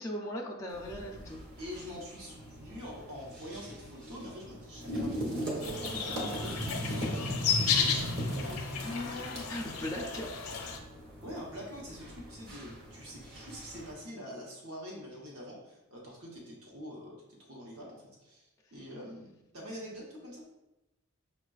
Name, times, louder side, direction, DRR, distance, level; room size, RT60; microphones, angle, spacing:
voice 1, 0.0-1.4 9.5-10.6, equal, 15° left, -2 dB, 0.3 m, -38 dB
sound 1, 0.7-13.9, equal, 45° right, 0.9 m, -39 dB
voice 2, 1.6-9.5 9.9-10.0 11.2-20.4, equal, 75° right, -3 dB, 1.0 m, -45 dB
sound 2, 5.6-10.8, left 6 dB, 90° left, 0.5 m, -33 dB
6.1 x 2.3 x 2.3 m, 0.96 s
head